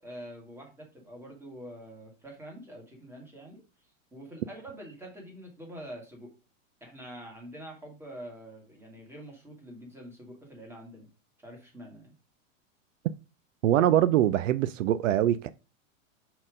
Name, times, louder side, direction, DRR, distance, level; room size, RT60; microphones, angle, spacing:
voice 1, 0.0-6.3 6.8-11.1 11.4-12.1, equal, 5° right, 2.0 m, -46 dB
voice 2, 13.6-15.5, right 12 dB, 70° right, 0.6 m, -23 dB
5.9 x 4.3 x 5.0 m
supercardioid pair, 150°, 39 cm